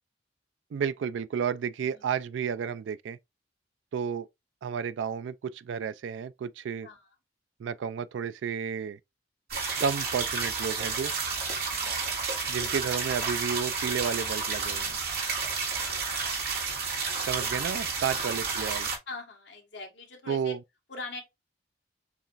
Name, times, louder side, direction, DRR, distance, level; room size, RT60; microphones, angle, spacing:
voice 1, 0.7-3.2 3.9-4.3 4.6-6.9 7.6-9.0 9.8-11.1 12.5-15.0 17.3-18.9 20.3-20.6, right 7 dB, 90° right, 0.3 m, -32 dB
voice 2, 1.8-2.1 6.8-7.1 11.7-12.2 15.8-17.5 18.1-18.4 19.1-20.5 20.9-21.2, left 3 dB, 70° left, 1.7 m, -44 dB
sound 1, 9.5-19.0, right 4 dB, 55° right, 2.1 m, -31 dB
6.9 x 2.9 x 2.5 m
head